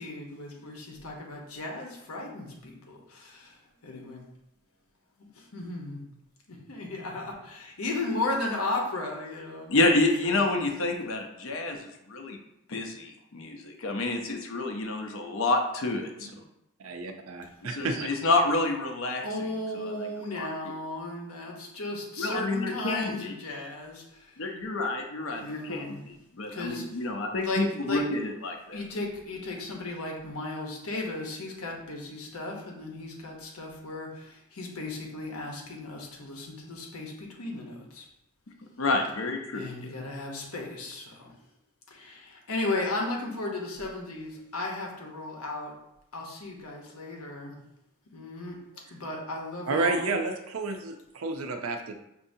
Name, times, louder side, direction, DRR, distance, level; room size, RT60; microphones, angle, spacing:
voice 1, 0.0-3.5 3.8-4.2 5.5-6.0 6.5-9.8 10.2-10.4 19.2-24.0 25.3-26.0 26.5-26.8 27.4-28.0 28.7-38.0 39.5-41.2 41.9-45.7 46.1-47.5 48.1-48.6 48.9-50.2, left 2 dB, 85° left, 0 dB, 0.9 m, -35 dB
voice 2, 9.7-12.4 12.7-16.1 17.6-19.2 19.7-20.1 20.3-20.7 22.2-23.3 24.4-28.8 38.8-39.6, left 2 dB, 65° left, 4 dB, 0.6 m, -29 dB
voice 3, 16.8-18.1 49.7-51.9, right 3 dB, 75° right, 5 dB, 0.5 m, -31 dB
6.2 x 2.7 x 2.7 m, 0.85 s
head